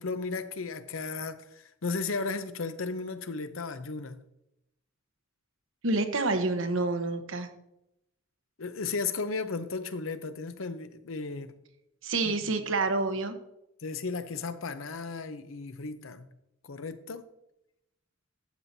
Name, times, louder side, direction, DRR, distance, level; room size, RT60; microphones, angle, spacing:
voice 1, 0.0-4.2 8.6-11.5 12.2-12.5 13.8-16.3 16.6-17.2, left 4 dB, 75° left, 11 dB, 0.7 m, -35 dB
voice 2, 5.8-7.5 12.0-13.4, right 3 dB, 70° right, 7 dB, 1.0 m, -28 dB
12.5 x 7.6 x 2.7 m, 0.84 s
head